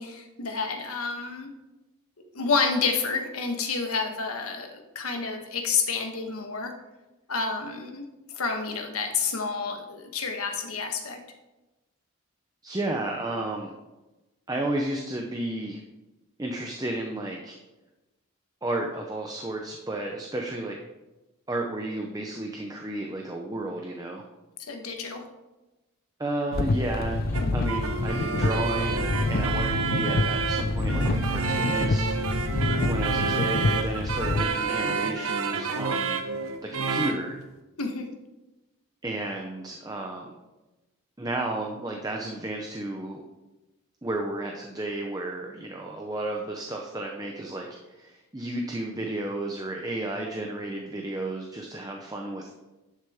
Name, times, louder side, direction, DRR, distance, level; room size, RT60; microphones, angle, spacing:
voice 1, 0.0-1.5 2.3-6.7 7.3-11.2 24.6-25.2 37.8-38.1, left 5 dB, 85° left, 4 dB, 1.3 m, -29 dB
voice 2, 12.6-13.7 14.5-15.8 16.4-17.6 18.6-20.8 21.5-24.2 26.2-27.2 27.5-32.6 32.9-36.2 36.6-37.4 39.0-40.4 41.2-43.2 44.0-52.5, right 2 dB, 15° right, 1 dB, 0.7 m, -32 dB
Windshield Wipers, 26.5-34.4, left 2 dB, 45° left, 0.4 m, -27 dB
sound 1, 27.2-32.9, equal, 10° left, 1.2 m, -38 dB
sound 2, 27.3-37.2, right 4 dB, 80° right, 0.9 m, -29 dB
11.0 x 6.6 x 3.6 m, 1.1 s
head